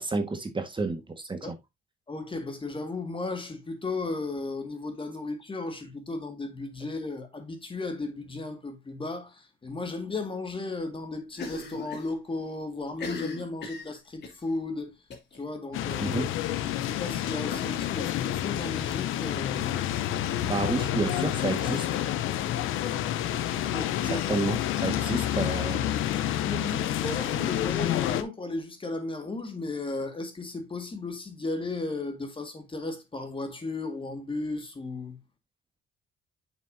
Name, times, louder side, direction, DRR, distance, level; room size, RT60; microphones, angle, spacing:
voice 1, 0.0-1.4 16.0-16.2 20.5-22.0 24.0-25.9, right 3 dB, 25° right, 1.5 m, -30 dB
voice 2, 2.1-14.9 15.4-16.2 16.7-19.8 23.5-24.3 26.4-35.2, left 3 dB, 25° left, 1.9 m, -35 dB
Cough, 11.3-12.1 12.4-12.5 12.9-14.4 15.1-15.4 15.7-15.8 16.2-16.3 17.5-18.7, left 4 dB, 60° left, 2.8 m, -39 dB
sound 1, 15.7-28.2, left 12 dB, 90° left, 0.7 m, -29 dB
7.3 x 6.4 x 2.6 m
cardioid pair, 90°, 20 cm